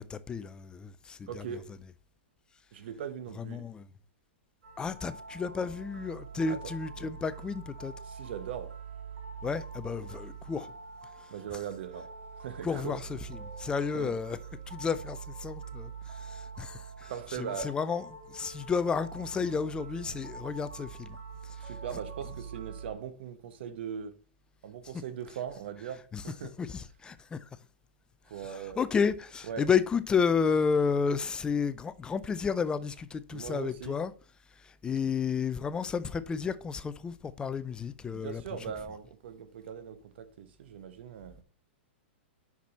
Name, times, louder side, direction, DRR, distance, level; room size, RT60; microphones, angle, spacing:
voice 1, 0.0-1.4 3.4-3.9 4.8-7.9 9.4-10.7 11.2-11.3 12.6-14.4 14.7-21.2 21.4-21.7 26.1-26.2 26.6-27.5 28.4-34.1 34.5-38.4, left 6 dB, 15° left, 0.4 m, -32 dB
voice 2, 1.3-1.7 2.7-3.7 6.4-6.6 8.0-8.8 11.3-12.1 12.4-13.0 13.9-14.1 17.1-17.8 21.6-24.2 24.6-26.6 28.3-28.8 29.5-29.6 33.3-34.0 38.1-41.4, right 8 dB, 65° right, 1.0 m, -40 dB
sound 1, 4.6-22.9, right 5 dB, 85° right, 2.3 m, -44 dB
6.0 x 5.9 x 4.3 m
hypercardioid pair, 140°, 6 cm